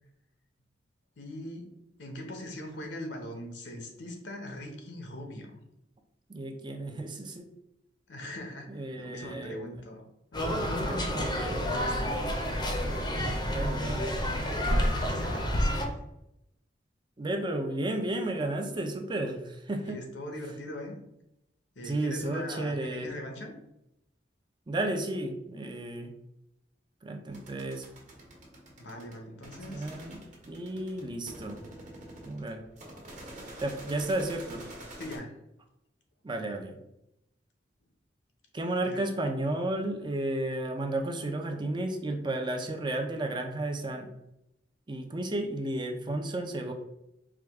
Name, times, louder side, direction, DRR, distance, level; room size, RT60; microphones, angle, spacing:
voice 1, 1.2-1.7 2.0-5.6 8.1-10.1 10.3-12.1 13.8-15.9 19.9-21.0 21.8-23.5 28.8-29.9 35.0-35.3 38.9-39.0, left 1 dB, 75° left, 3 dB, 0.8 m, -41 dB
voice 2, 6.3-7.4 8.7-9.6 10.8-12.3 13.5-14.1 17.2-20.0 21.8-23.1 24.7-26.1 27.0-27.9 29.7-30.2 30.5-31.6 32.2-32.6 33.6-34.6 36.2-36.8 38.5-44.1 44.9-46.7, right 1 dB, 25° right, 4 dB, 0.5 m, -33 dB
sound 1, 10.3-15.9, equal, 25° left, 0.6 m, -29 dB
sound 2, 27.3-35.2, right 1 dB, 45° right, 1.2 m, -47 dB
4.8 x 2.3 x 3.4 m, 0.84 s
head